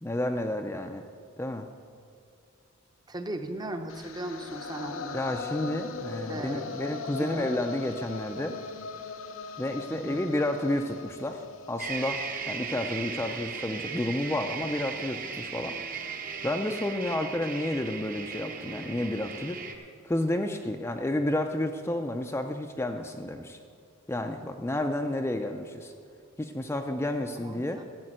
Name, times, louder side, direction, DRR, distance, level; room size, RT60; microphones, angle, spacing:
voice 1, 0.0-1.1 1.4-1.7 5.1-8.6 9.6-15.7 16.4-19.6 20.0-23.6 24.1-25.9 26.4-27.8, left 1 dB, 10° left, 4 dB, 0.4 m, -31 dB
voice 2, 3.1-5.2 6.3-6.7 7.2-7.5 9.9-10.2 27.4-27.8, right 1 dB, 20° right, 6 dB, 0.7 m, -37 dB
sound 1, 3.9-14.0, left 4 dB, 75° left, 0.8 m, -40 dB
sound 2, 11.8-19.8, right 5 dB, 45° right, 1.0 m, -37 dB
12.0 x 7.4 x 7.5 m, 2.4 s
head